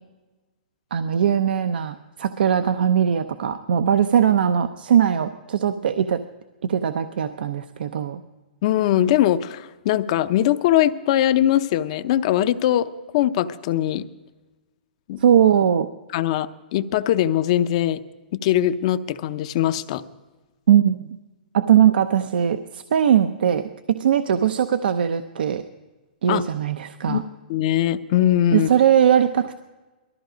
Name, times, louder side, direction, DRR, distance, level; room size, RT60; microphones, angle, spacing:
voice 1, 0.9-6.2 6.7-8.2 15.2-15.9 20.7-21.2 21.5-25.6 26.2-27.2 28.5-29.7, right 9 dB, 75° right, 9 dB, 0.7 m, -20 dB
voice 2, 8.6-14.0 15.1-15.2 16.1-18.0 18.4-20.0 26.3-26.4 27.1-27.2 27.5-28.7, left 12 dB, 40° left, 12 dB, 0.6 m, -21 dB
19.0 x 14.0 x 5.1 m, 1.2 s
hypercardioid pair, 165°, 5 cm